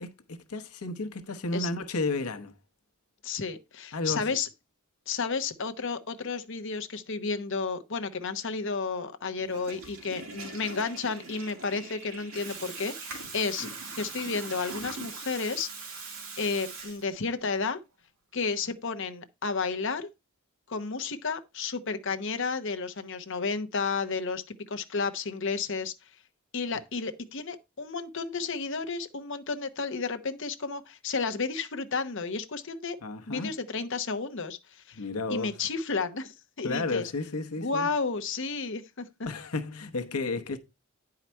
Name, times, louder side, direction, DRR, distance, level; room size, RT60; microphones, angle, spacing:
voice 1, 0.0-2.5 3.9-4.3 13.6-13.7 33.0-33.5 34.9-35.6 36.6-37.9 39.3-40.6, left 3 dB, 85° left, 1.0 m, -32 dB
voice 2, 3.2-4.5 5.1-13.7 14.0-16.1 16.4-17.8 18.3-20.1 20.7-25.9 26.5-33.0 33.3-34.6 34.9-35.0 35.3-37.1 37.6-39.1, left 4 dB, 55° left, 0.9 m, -32 dB
Water tap faucet / Toilet flush, 9.4-17.4, right 4 dB, 70° right, 2.4 m, -41 dB
9.6 x 4.8 x 4.3 m
head